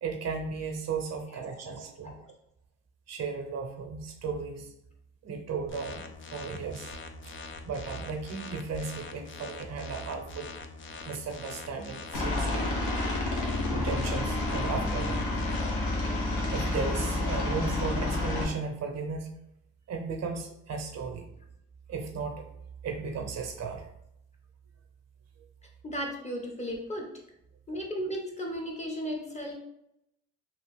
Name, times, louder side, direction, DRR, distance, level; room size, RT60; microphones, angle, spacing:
voice 1, 0.0-2.2 3.1-4.7 5.2-6.9 7.3-7.4 7.7-10.5 11.0-12.8 13.7-15.3 16.5-19.4 19.9-21.3 21.9-22.4 22.8-23.8, right 5 dB, 60° right, 4 dB, 0.7 m, -35 dB
sound 1, 5.7-15.7, left 4 dB, 40° left, 0.4 m, -44 dB
Aircraft, 12.1-18.4, left 2 dB, 90° left, 0.9 m, -29 dB
voice 2, 25.8-27.1 27.7-29.6, equal, 25° left, 1 dB, 0.8 m, -35 dB
3.0 x 2.4 x 3.4 m, 0.82 s
cardioid pair, 90°, 30 cm